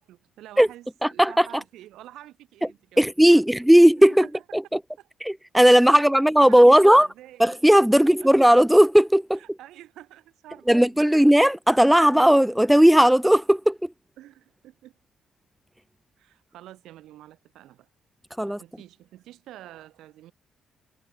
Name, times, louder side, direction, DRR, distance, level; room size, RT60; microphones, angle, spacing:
voice 1, 0.0-3.4 4.1-4.4 5.0-5.1 6.1-7.6 8.2-8.3 9.3-11.2 14.2-14.9 16.2-17.9 18.4-20.3, right 14 dB, 85° right, 6.6 m, -48 dB
voice 2, 1.0-1.5 3.0-4.3 4.5-4.8 5.2-7.1 7.4-9.4 10.7-13.9 18.4-18.6, equal, 5° right, 0.9 m, -16 dB
cardioid pair, 90°, 0 cm